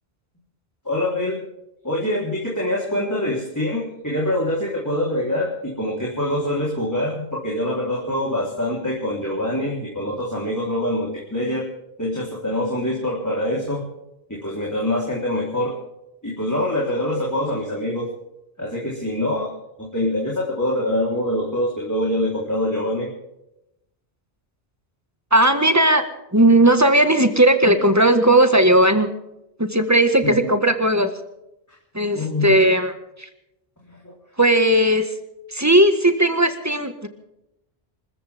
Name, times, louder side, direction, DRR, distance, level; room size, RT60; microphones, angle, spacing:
voice 1, 0.8-1.4 1.8-11.7 12.0-13.8 14.3-15.8 16.2-18.1 18.6-19.5 19.8-23.1 30.2-30.5 32.1-32.5, left 1 dB, 15° left, -4 dB, 3.9 m, -24 dB
voice 2, 25.3-26.0 26.3-29.1 29.6-31.1 31.9-32.9 33.2-33.3 34.4-35.1 35.5-37.1, right 1 dB, 15° right, 7 dB, 1.7 m, -16 dB
26.5 x 14.5 x 3.6 m, 0.85 s
omnidirectional pair, 1.1 m